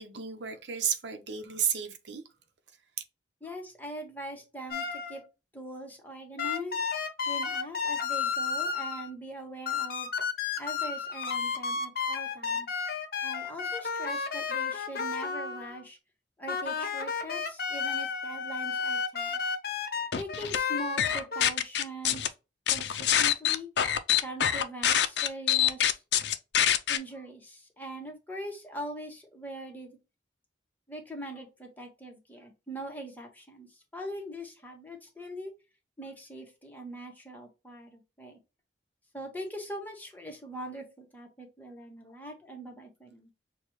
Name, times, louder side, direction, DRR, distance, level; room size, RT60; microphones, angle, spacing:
voice 1, 0.0-2.2, right 7 dB, 85° right, 0.8 m, -32 dB
voice 2, 3.4-5.2 5.5-6.8 7.3-10.1 10.6-12.7 13.2-16.0 16.4-19.4 20.2-22.3 22.7-23.7 24.2-26.0 26.9-29.9 30.9-35.5 36.0-38.4 39.1-43.3, right 1 dB, 10° left, 1.1 m, -42 dB
sound 1, 4.7-5.2 6.4-9.1 9.7-15.8 16.5-21.5, left 5 dB, 55° left, 0.8 m, -32 dB
sound 2, 20.1-20.6 21.0-22.3 22.7-27.0, left 10 dB, 75° left, 0.5 m, -25 dB
6.6 x 2.3 x 3.1 m
head